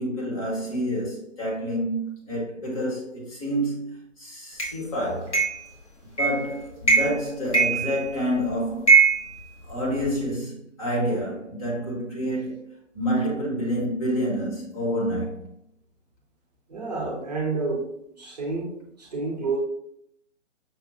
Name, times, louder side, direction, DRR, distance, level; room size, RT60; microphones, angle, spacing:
voice 1, 0.0-5.4 6.2-8.9 9.6-15.5, equal, 30° left, 1.2 m, -28 dB
sound 1, 4.6-4.7 5.3-5.7 6.2-6.5 6.8-7.2 7.5-8.3 8.9-10.1, right 5 dB, 65° left, 1.4 m, -21 dB
voice 2, 16.7-17.8 18.2-19.6, right 3 dB, 35° right, 0.7 m, -29 dB
5.9 x 2.3 x 2.7 m
figure-of-eight pair, 135°, 38 cm